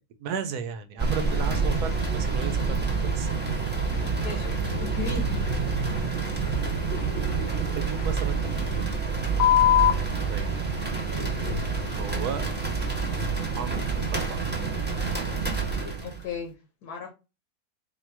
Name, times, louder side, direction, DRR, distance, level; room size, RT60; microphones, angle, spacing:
voice 1, 0.2-2.6 3.0-3.3 6.4-6.5 7.8-8.9 10.3-10.7 12.0-12.5 13.5-14.4, right 7 dB, 85° right, 1.2 m, -34 dB
sound 1, 1.0-16.3, right 4 dB, 10° right, 0.8 m, -28 dB
sound 2, 1.3-1.7 3.4-3.6 3.9-4.1 4.4-4.6 4.9-5.1 5.4-5.6 6.0-6.2 6.5-6.7 7.0-7.2 7.5-7.7 8.0-8.2 9.4-9.9 11.0-14.6 15.7-15.9, left 11 dB, 65° left, 1.1 m, -28 dB
voice 2, 4.2-5.3 7.5-7.6 16.0-16.6 16.8-17.1, left 4 dB, 80° left, 1.5 m, -35 dB
4.4 x 2.1 x 4.5 m
omnidirectional pair, 1.6 m